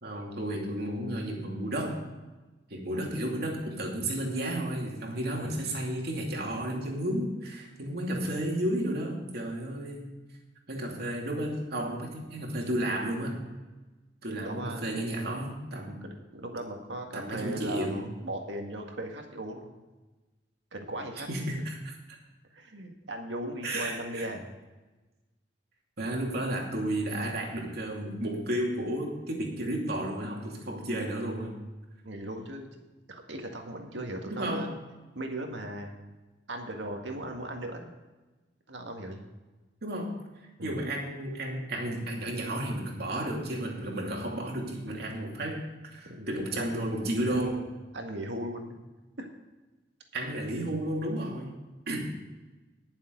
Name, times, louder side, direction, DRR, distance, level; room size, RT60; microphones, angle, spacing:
voice 1, 0.0-2.0 2.7-10.1 10.7-13.4 14.2-16.0 17.1-18.1 21.3-22.2 23.6-24.3 26.0-31.5 34.3-34.8 39.8-40.2 40.6-47.6 50.1-51.5 51.9-52.1, right 1 dB, 60° right, -1 dB, 2.6 m, -32 dB
voice 2, 14.4-14.9 16.0-19.8 20.7-21.3 22.5-24.6 32.0-32.8 33.1-34.8 35.2-36.0 36.5-37.9 38.7-39.3 40.6-40.9 46.0-46.9 47.3-47.4 47.9-48.8 49.2-49.3, right 1 dB, 75° right, 2 dB, 1.9 m, -38 dB
20.0 x 7.1 x 3.9 m, 1.2 s
head